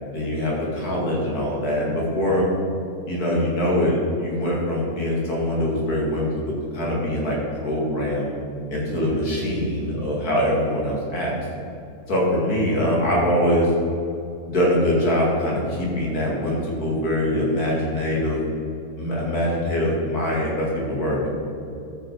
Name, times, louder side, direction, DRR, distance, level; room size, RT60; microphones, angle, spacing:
voice 1, 0.1-2.4 3.1-6.3 6.7-8.3 8.7-11.3 12.1-13.7 14.5-18.4 19.0-21.3, left 1 dB, 90° left, -4 dB, 2.7 m, -23 dB
13.0 x 6.2 x 4.5 m, 2.6 s
omnidirectional pair, 1.6 m